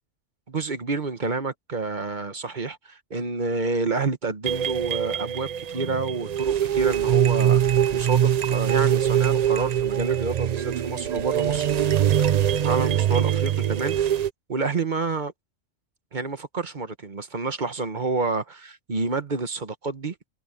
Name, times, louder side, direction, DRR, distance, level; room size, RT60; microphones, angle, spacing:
voice 1, 0.5-11.7 12.6-14.1 14.5-15.3 16.1-20.1, right 4 dB, 40° right, 1.3 m, -29 dB
sound 1, 4.4-14.3, right 10 dB, 60° right, 0.4 m, -23 dB
sound 2, 7.8-13.0, left 1 dB, 80° left, 6.7 m, -47 dB
omnidirectional pair, 1.2 m